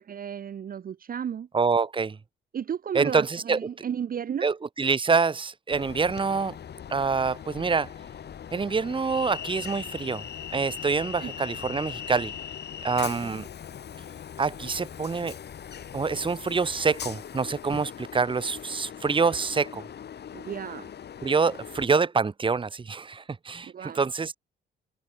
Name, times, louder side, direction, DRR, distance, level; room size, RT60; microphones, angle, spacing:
voice 1, 0.0-1.5 2.5-4.5 11.2-11.3 13.2-13.5 20.3-20.9 23.7-24.0, right 8 dB, 45° right, 0.9 m, -34 dB
voice 2, 1.5-2.2 2.9-3.6 4.4-6.6 6.9-7.9 8.5-10.2 10.5-12.3 12.8-13.4 14.4-15.3 15.9-19.8 21.2-24.3, right 5 dB, 25° right, 1.1 m, -26 dB
Train, 5.7-21.9, left 8 dB, 55° left, 4.0 m, -40 dB
cardioid pair, 90°, 20 cm